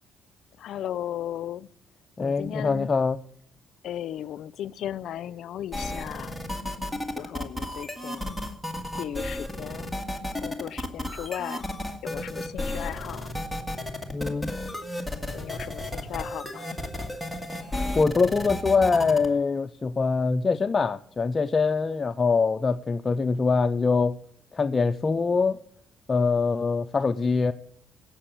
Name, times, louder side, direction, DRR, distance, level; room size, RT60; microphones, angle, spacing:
voice 1, 0.6-1.7 2.2-2.9 3.8-6.4 7.2-8.4 9.0-9.9 10.4-11.7 12.0-13.3 15.3-16.8, left 11 dB, 70° left, 0.5 m, -36 dB
voice 2, 2.2-3.2 14.1-14.5 18.0-24.2 24.5-25.6 26.1-27.5, left 4 dB, 30° left, 0.5 m, -23 dB
sound 1, 5.7-19.3, left 1 dB, ahead, 1.8 m, -33 dB
16.5 x 6.8 x 8.6 m
cardioid pair, 120°, 0 cm